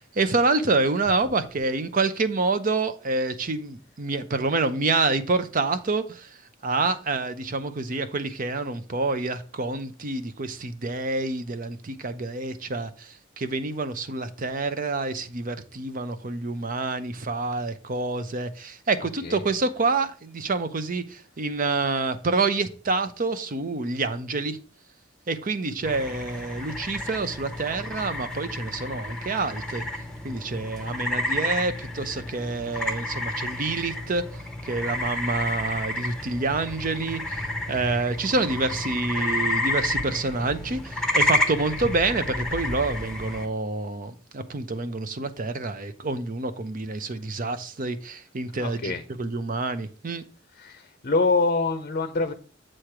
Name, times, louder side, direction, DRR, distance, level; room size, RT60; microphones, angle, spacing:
voice 1, 0.2-6.3 6.6-13.1 13.4-24.6 25.3-29.8 30.2-34.2 34.6-50.2, right 3 dB, 45° right, 0.7 m, -27 dB
sound 1, 25.8-43.5, left 1 dB, 5° left, 0.9 m, -30 dB
voice 2, 48.6-49.0 50.5-52.3, left 3 dB, 45° left, 0.6 m, -25 dB
7.6 x 3.3 x 5.8 m
head